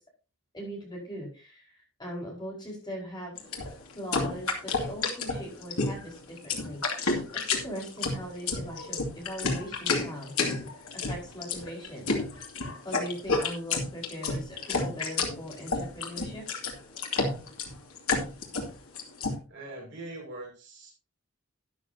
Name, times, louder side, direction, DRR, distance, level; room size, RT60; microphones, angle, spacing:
voice 1, 0.5-3.4 3.9-7.0 7.3-10.3 11.1-12.1 12.8-16.4, equal, 20° left, -2 dB, 5.1 m, -40 dB
sound 1, 3.4-19.4, left 3 dB, 85° left, 2.5 m, -30 dB
voice 2, 19.5-20.9, right 2 dB, 55° right, -1 dB, 6.6 m, -42 dB
12.5 x 10.5 x 2.8 m, 0.32 s
head